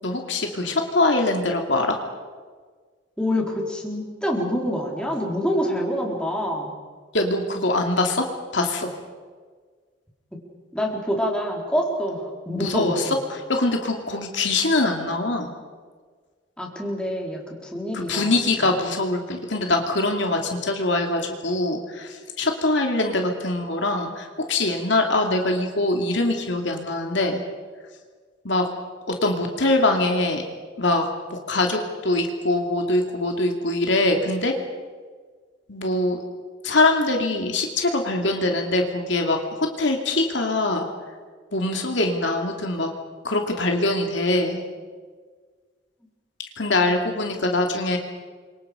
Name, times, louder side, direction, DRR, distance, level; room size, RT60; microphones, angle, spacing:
voice 1, 0.0-2.0 7.1-8.3 8.5-8.9 12.6-13.2 13.5-15.5 17.9-27.4 28.4-28.7 29.2-30.4 30.8-34.5 35.7-36.2 36.6-40.9 41.5-42.9 43.2-44.6 46.6-48.0, left 2 dB, 65° left, 3 dB, 2.7 m, -23 dB
voice 2, 3.2-6.7 10.3-10.4 10.7-13.2 16.6-18.7, equal, 5° left, -2 dB, 4.2 m, -26 dB
29.0 x 25.0 x 5.2 m, 1.5 s
head